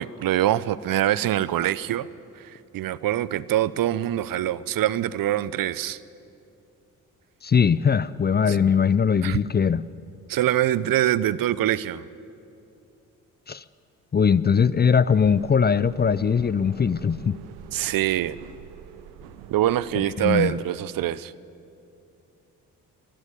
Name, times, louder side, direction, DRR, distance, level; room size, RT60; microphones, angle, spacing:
voice 1, 0.0-2.1 2.4-6.0 8.5-8.6 9.2-9.4 10.3-12.0 17.7-18.4 19.5-21.3, right 13 dB, 55° right, 19 dB, 0.7 m, -24 dB
voice 2, 7.4-9.8 13.5-13.6 14.1-17.4 20.2-20.5, left 6 dB, 25° left, 18 dB, 0.5 m, -21 dB
sound 1, 15.1-20.2, right 8 dB, 75° right, 1.2 m, -45 dB
23.0 x 12.5 x 9.7 m, 2.6 s
hypercardioid pair, 45°, 41 cm